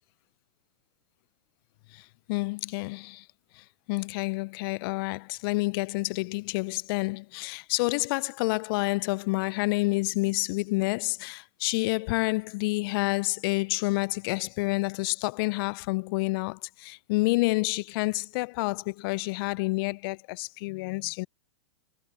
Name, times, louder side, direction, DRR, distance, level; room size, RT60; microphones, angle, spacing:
voice 1, 1.9-3.3 3.5-21.3, left 24 dB, 50° left, 0.5 m, -29 dB
hypercardioid pair, 110°, 16 cm